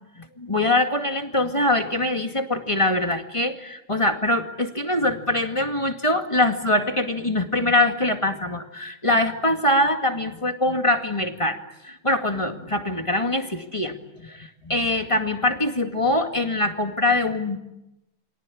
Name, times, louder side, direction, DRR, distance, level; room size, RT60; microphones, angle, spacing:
voice 1, 0.2-11.6 11.8-14.0 14.2-17.6, left 1 dB, 15° left, 5 dB, 2.1 m, -23 dB
29.5 x 23.5 x 8.6 m, 0.91 s
omnidirectional pair, 2.2 m